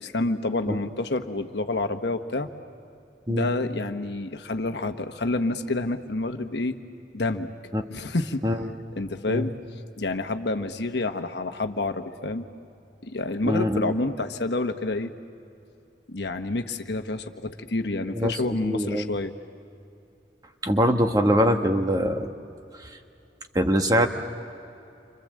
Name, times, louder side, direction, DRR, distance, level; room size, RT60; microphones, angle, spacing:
voice 1, 0.0-2.5 3.3-6.8 7.1-7.5 7.9-8.4 8.9-9.5 10.0-12.4 13.0-15.1 16.1-19.3, left 2 dB, 70° left, 7 dB, 1.2 m, -28 dB
voice 2, 13.4-14.0 18.1-19.1 20.6-22.3 22.8-23.0 23.5-24.1, equal, 20° right, 5 dB, 1.3 m, -23 dB
29.5 x 25.5 x 7.7 m, 2.7 s
head